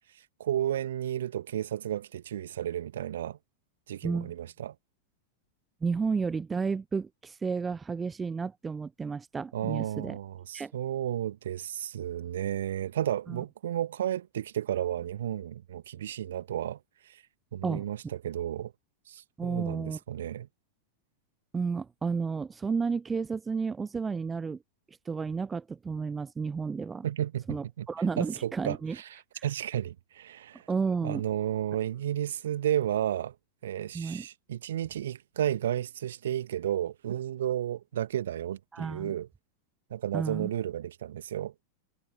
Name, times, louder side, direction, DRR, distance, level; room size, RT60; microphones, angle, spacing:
voice 1, 0.1-3.4 3.9-4.8 9.5-17.2 17.5-18.7 19.1-20.5 27.0-27.9 28.2-30.7 31.0-33.4 33.6-39.3 39.9-41.5, right 11 dB, 60° right, 1.8 m, -33 dB
voice 2, 5.8-10.2 10.5-10.7 13.3-13.4 17.6-17.8 19.4-20.0 21.5-24.6 25.1-27.1 27.5-29.0 29.3-29.4 30.7-31.2 33.9-34.3 38.7-39.2 40.1-40.5, right 5 dB, 15° right, 0.3 m, -32 dB
figure-of-eight pair, 90°, 0 cm